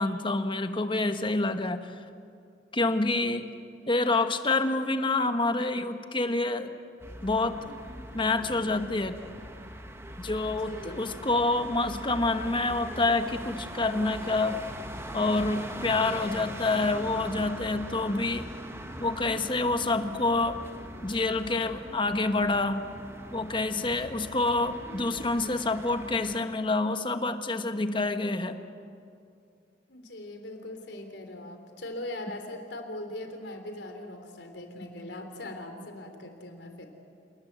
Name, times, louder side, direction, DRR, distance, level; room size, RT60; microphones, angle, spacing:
voice 1, 0.0-1.8 2.7-3.5 3.9-6.7 7.2-7.6 8.1-9.2 10.2-14.6 15.1-18.5 19.0-20.6 21.0-22.9 23.3-28.6, left 2 dB, 30° left, 8 dB, 1.2 m, -27 dB
sound 1, 7.0-26.4, right 1 dB, 15° right, 1.6 m, -41 dB
voice 2, 10.5-11.1 29.9-36.9, left 1 dB, 85° left, 5 dB, 3.4 m, -40 dB
28.0 x 19.5 x 8.1 m, 2.4 s
head